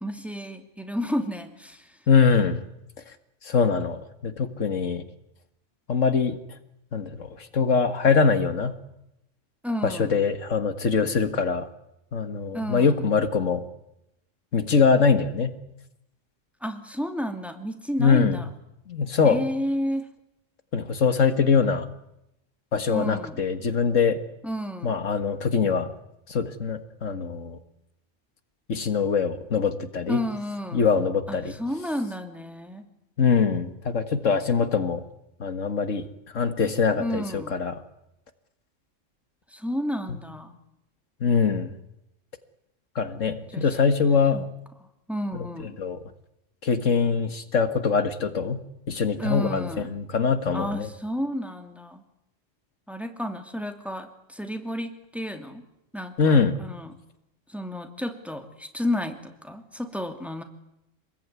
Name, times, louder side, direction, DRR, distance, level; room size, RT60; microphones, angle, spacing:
voice 1, 0.0-1.9 9.6-10.1 12.5-13.1 16.6-18.5 19.2-20.1 22.9-23.4 24.4-24.9 30.1-30.9 31.3-32.9 37.0-37.5 39.5-40.6 43.5-43.6 44.3-44.4 45.1-45.7 49.2-49.9 50.5-52.0 52.9-55.6 55.9-56.9 57.5-60.4, equal, ahead, 6 dB, 2.7 m, -31 dB
voice 2, 2.1-2.6 3.4-5.0 5.9-6.4 6.9-8.7 9.8-11.7 12.1-13.6 14.5-15.5 18.0-18.4 18.9-19.4 20.7-21.9 22.7-24.2 24.8-25.9 26.3-27.6 28.7-30.2 30.7-31.6 33.2-35.0 35.4-36.1 36.3-37.8 41.2-41.7 43.0-44.5 45.3-45.5 45.8-46.0 46.6-48.6 48.9-50.9 56.2-56.6, left 5 dB, 80° left, 10 dB, 2.0 m, -23 dB
27.0 x 20.5 x 9.6 m, 0.84 s
omnidirectional pair, 1.3 m